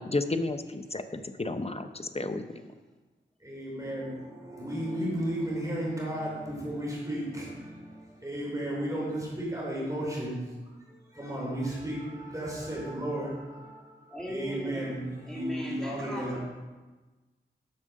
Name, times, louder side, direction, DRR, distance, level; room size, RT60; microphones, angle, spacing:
voice 1, 0.0-2.7, left 2 dB, 30° left, 9 dB, 0.7 m, -32 dB
voice 2, 3.4-10.4 10.9-16.4, right 1 dB, 15° right, -5 dB, 3.5 m, -34 dB
voice 3, 14.1-14.9 15.2-16.4, left 1 dB, 5° left, -4 dB, 2.2 m, -38 dB
8.6 x 6.2 x 6.5 m, 1.3 s
wide cardioid pair, 60°, 20 cm